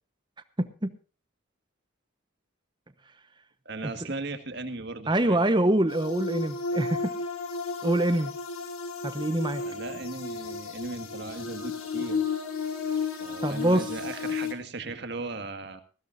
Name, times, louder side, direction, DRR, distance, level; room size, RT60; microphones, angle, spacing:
voice 1, 0.6-0.9 3.8-3.9 5.1-7.1 7.8-8.3 9.0-9.6 13.4-13.9, right 1 dB, 20° right, 0.9 m, -25 dB
voice 2, 3.7-5.4 9.6-12.2 13.2-15.8, right 3 dB, 50° right, 1.8 m, -37 dB
sound 1, 5.9-14.5, left 4 dB, 85° left, 2.6 m, -33 dB
20.0 x 15.5 x 2.6 m
head